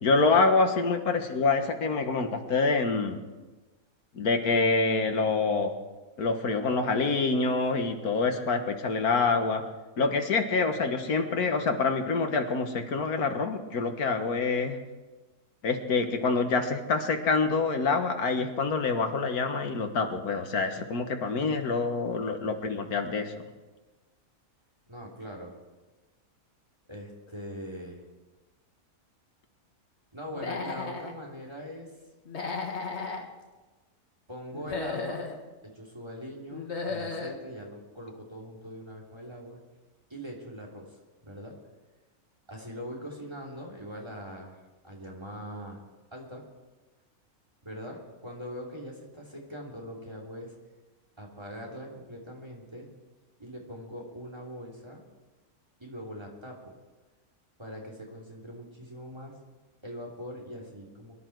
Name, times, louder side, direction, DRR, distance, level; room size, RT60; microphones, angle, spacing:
voice 1, 0.0-3.2 4.1-5.8 6.2-9.6 10.0-14.8 15.6-23.3, left 4 dB, 80° left, 6 dB, 1.9 m, -26 dB
voice 2, 24.9-25.6 26.9-28.0 30.1-31.9 34.3-35.2 35.6-39.6 40.1-41.6 42.5-45.8 46.1-46.5 47.6-50.5 51.2-52.9 53.4-55.0 55.8-56.8 57.6-59.4 59.8-61.1, equal, 15° right, -1 dB, 2.8 m, -42 dB
Human voice / Animal, 30.3-31.1 32.3-33.2 34.5-35.4 36.5-37.4, left 4 dB, 50° left, 1.8 m, -34 dB
23.0 x 11.5 x 4.6 m, 1.2 s
omnidirectional pair, 1.6 m